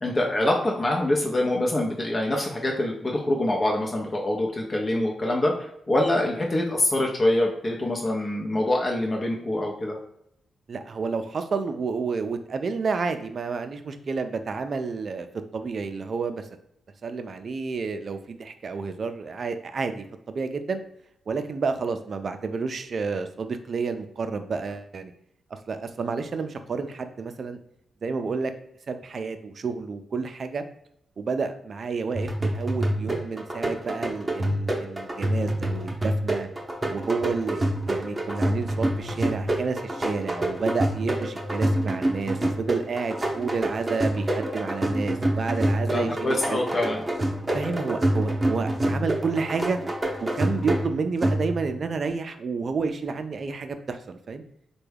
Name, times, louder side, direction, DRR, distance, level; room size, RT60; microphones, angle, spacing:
voice 1, 0.0-5.5 5.9-10.0 45.9-47.0, left 1 dB, 35° left, 0 dB, 0.6 m, -25 dB
voice 2, 10.7-15.3 15.5-16.5 17.0-20.8 21.3-25.1 25.7-27.6 28.0-28.5 28.9-30.6 31.2-36.5 36.9-46.6 47.5-49.8 50.2-54.4, right 4 dB, 55° right, 8 dB, 0.4 m, -30 dB
sound 1, 32.1-51.8, right 1 dB, 20° right, 0.7 m, -27 dB
3.4 x 2.2 x 3.3 m, 0.73 s
cardioid pair, 70°, 0 cm